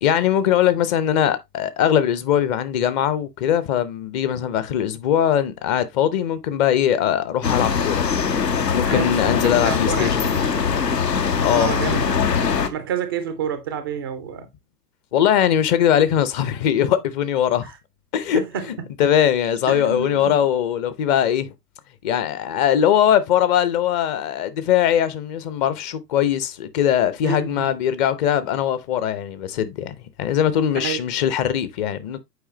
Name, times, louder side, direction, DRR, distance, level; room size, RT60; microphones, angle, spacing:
voice 1, 0.0-8.1 8.7-10.3 11.4-11.7 15.1-17.7 18.1-18.4 18.7-21.5 22.0-32.2, left 10 dB, 25° left, 0.6 m, -21 dB
sound 1, 7.4-12.7, left 6 dB, 75° left, 1.1 m, -22 dB
voice 2, 8.8-9.2 9.4-10.1 11.5-12.1 12.7-14.5 18.3-18.7 19.7-20.4 27.2-27.7 30.7-31.0, right 7 dB, 15° right, 0.3 m, -28 dB
7.9 x 4.9 x 2.8 m
figure-of-eight pair, 100°, 50 cm